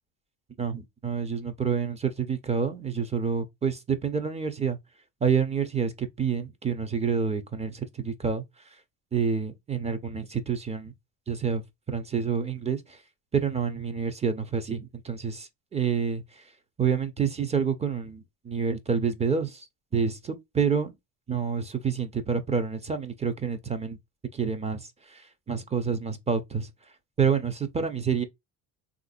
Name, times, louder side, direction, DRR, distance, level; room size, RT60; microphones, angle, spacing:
voice 1, 0.6-4.8 5.2-8.4 9.1-10.9 11.3-11.6 11.9-13.0 13.3-16.4 16.8-19.7 19.9-20.9 21.3-24.0 24.3-26.7 27.2-28.2, right 6 dB, 15° right, 0.4 m, -28 dB
3.5 x 2.5 x 2.4 m
supercardioid pair, 110°, 44 cm